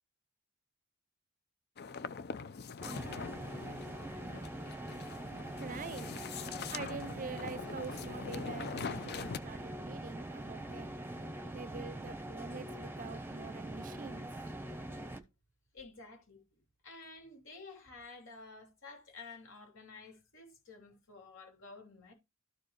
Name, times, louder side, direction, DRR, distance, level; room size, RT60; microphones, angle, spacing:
sound 1, 1.8-9.4, left 5 dB, 50° left, 0.5 m, -43 dB
sound 2, 2.8-15.2, right 1 dB, 10° right, 0.9 m, -43 dB
voice 1, 5.6-6.1 6.7-11.0 11.5-14.3, right 5 dB, 40° right, 0.6 m, -45 dB
voice 2, 15.7-16.4 16.8-22.1, left 4 dB, 65° left, 3.2 m, -52 dB
13.0 x 4.8 x 3.2 m
head